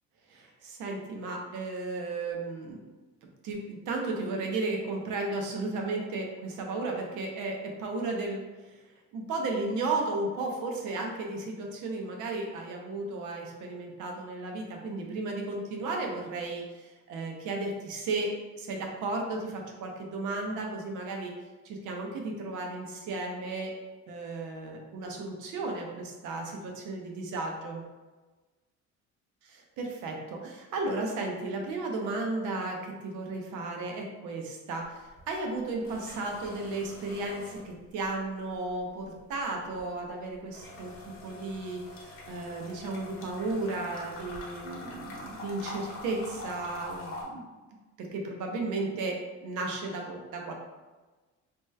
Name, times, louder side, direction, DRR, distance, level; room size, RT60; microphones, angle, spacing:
voice 1, 0.3-2.8 3.4-8.4 8.7-8.8 9.1-21.3 21.6-23.7 24.1-27.8 29.4-40.9 41.2-47.4 48.0-50.5, right 2 dB, 85° right, 1 dB, 0.7 m, -34 dB
sound 1, 34.8-35.2 35.5-38.2 38.5-47.2, left 2 dB, 45° left, 0.7 m, -44 dB
3.0 x 2.2 x 3.1 m, 1.2 s
cardioid pair, 160°, 30 cm